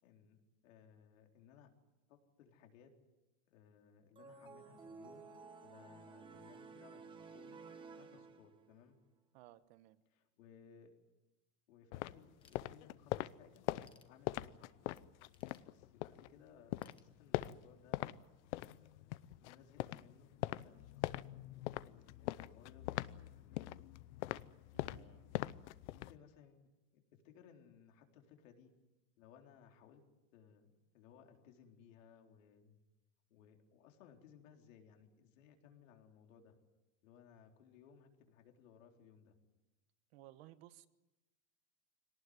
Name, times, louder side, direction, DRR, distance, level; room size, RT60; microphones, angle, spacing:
voice 1, 0.0-1.7 2.1-2.9 3.5-7.6 7.9-9.0 10.1-10.9 11.7-13.7 14.1-14.8 15.6-18.1 18.5-23.7 24.8-25.4 25.8-28.7 29.2-30.0 30.3-32.8 33.3-36.5 37.0-39.4, left 7 dB, 80° left, 3 dB, 4.1 m, -63 dB
sound 1, 4.2-8.8, right 5 dB, 10° right, 1.2 m, -54 dB
voice 2, 9.3-10.0 24.7-25.4 40.1-40.9, right 14 dB, 50° right, 13 dB, 1.2 m, -59 dB
sound 2, 11.9-16.3 16.6-18.2 18.4-26.2, left 17 dB, 65° left, 0.8 m, -42 dB
Ratchet pawl / Tools, 12.4-13.2 13.6-14.7 15.3-16.3 16.8-17.8, left 6 dB, 15° left, 1.1 m, -70 dB
22.5 x 19.0 x 9.6 m, 1.0 s
supercardioid pair, 180°, 38 cm